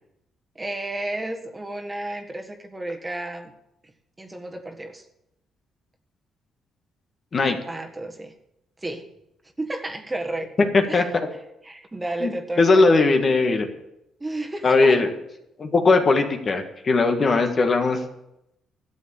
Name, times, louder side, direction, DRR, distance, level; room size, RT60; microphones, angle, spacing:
voice 1, 0.5-3.5 3.8-3.9 4.2-5.0 7.5-8.3 8.8-9.1 9.6-11.0 11.6-12.9 14.2-15.0, right 2 dB, 15° right, 4 dB, 1.5 m, -32 dB
voice 2, 10.7-11.2 12.2-12.3 12.6-13.7 14.6-15.1 15.6-18.0, left 3 dB, 40° left, 5 dB, 1.7 m, -19 dB
12.5 x 7.4 x 8.5 m, 0.84 s
cardioid pair, 90°, 0 cm